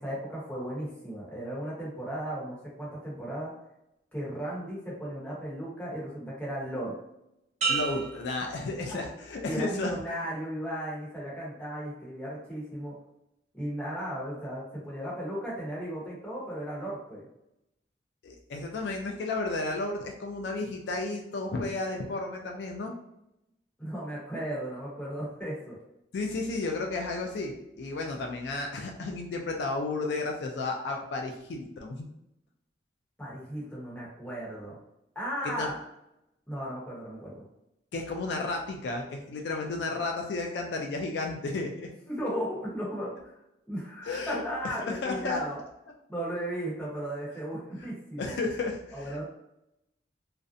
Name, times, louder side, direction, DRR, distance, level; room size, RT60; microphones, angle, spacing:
voice 1, 0.0-3.5 4.1-7.0 9.5-12.9 13.5-17.2 23.8-25.8 33.2-34.8 35.1-35.7 36.5-37.4 42.1-43.4 43.7-45.6 46.1-48.4 48.9-49.2, equal, 5° left, -7 dB, 0.9 m, -35 dB
sound 1, 7.6-9.4 9.9-10.3, right 5 dB, 40° right, 0.6 m, -33 dB
voice 2, 7.7-9.9 18.2-22.9 26.1-32.1 35.6-35.7 37.9-41.9 44.1-44.4 44.8-45.4 48.2-49.2, left 3 dB, 70° left, 2 dB, 0.3 m, -33 dB
2.5 x 2.1 x 2.5 m, 0.84 s
head